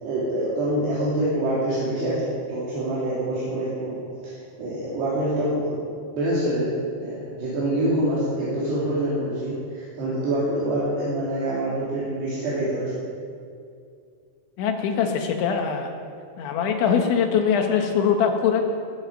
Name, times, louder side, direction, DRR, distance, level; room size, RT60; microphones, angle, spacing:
voice 1, 0.0-4.0 4.2-5.9 6.2-12.9, right 1 dB, 70° right, -8 dB, 4.6 m, -26 dB
voice 2, 14.6-15.9 16.4-18.6, left 7 dB, 85° left, 4 dB, 3.7 m, -22 dB
20.5 x 7.9 x 6.4 m, 2.3 s
omnidirectional pair, 5.1 m